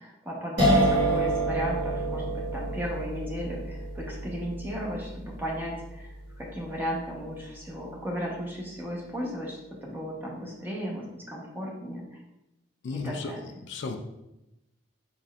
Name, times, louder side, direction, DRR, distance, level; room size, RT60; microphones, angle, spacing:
voice 1, 0.0-12.0 12.9-13.4, equal, 10° right, -3 dB, 0.9 m, -35 dB
sound 1, 0.6-7.5, right 1 dB, 55° right, 1.5 m, -28 dB
voice 2, 12.8-13.3 13.7-14.0, left 3 dB, 60° left, 6 dB, 0.4 m, -33 dB
5.3 x 4.1 x 2.4 m, 0.92 s
head